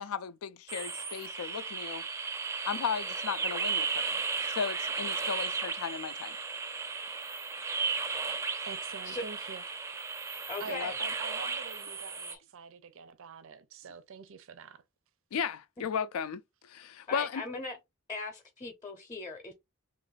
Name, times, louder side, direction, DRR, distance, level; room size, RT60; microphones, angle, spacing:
voice 1, 0.0-2.0 2.7-4.2 4.5-6.3 10.7-11.1 15.3-16.4 16.7-17.4, left 7 dB, 80° left, 0.4 m, -35 dB
sound 1, 0.7-12.3, right 4 dB, 15° right, 0.4 m, -35 dB
voice 2, 8.6-9.6 10.6-14.8, right 5 dB, 65° right, 0.5 m, -46 dB
voice 3, 10.5-11.0 12.3-12.4 15.8-15.9 17.1-17.8 18.1-19.5, left 2 dB, 20° left, 0.7 m, -39 dB
3.0 x 2.5 x 3.9 m
head